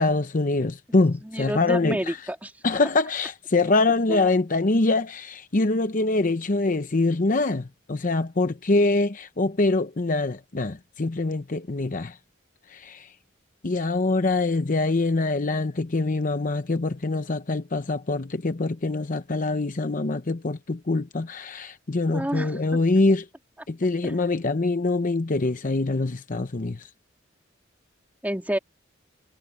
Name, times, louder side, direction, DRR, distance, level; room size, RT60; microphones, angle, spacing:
voice 1, 0.0-2.2 2.6-12.2 12.7-13.1 13.6-23.3 23.7-26.9, left 2 dB, 40° left, 0.8 m, -24 dB
voice 2, 1.2-2.5 4.1-4.2 22.1-22.6 24.0-24.1 28.2-28.6, equal, 10° right, 3.3 m, -29 dB
head